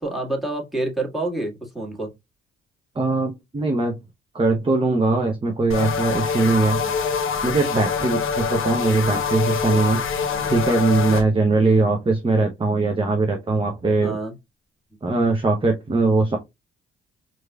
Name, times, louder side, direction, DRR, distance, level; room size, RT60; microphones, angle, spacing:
voice 1, 0.0-2.1 6.8-6.9 9.1-9.2 10.3-10.5 11.6-11.8 13.9-14.3, right 2 dB, ahead, 1.7 m, -28 dB
voice 2, 3.0-4.0 4.3-6.8 7.4-10.0 10.5-14.2 15.0-16.4, right 3 dB, 15° right, 0.7 m, -21 dB
sound 1, 5.7-11.2, left 6 dB, 45° left, 0.9 m, -25 dB
4.6 x 2.7 x 2.3 m
hypercardioid pair, 40°, 30 cm